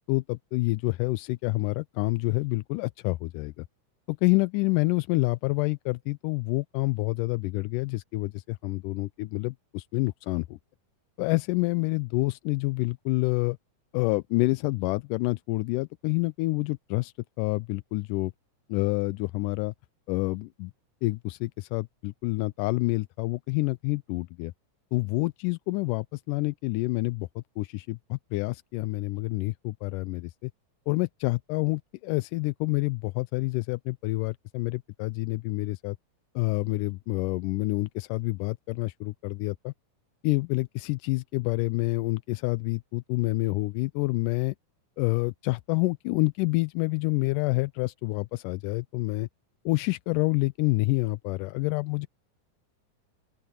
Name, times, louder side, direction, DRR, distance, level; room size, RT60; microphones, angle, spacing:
voice 1, 0.1-3.6 4.1-10.6 11.2-13.6 13.9-18.3 18.7-19.7 20.1-20.7 21.0-24.5 24.9-30.5 30.9-36.0 36.4-39.7 40.2-44.6 45.0-49.3 49.7-52.1, left 22 dB, 90° left, 2.1 m, -28 dB
open air
omnidirectional pair, 3.6 m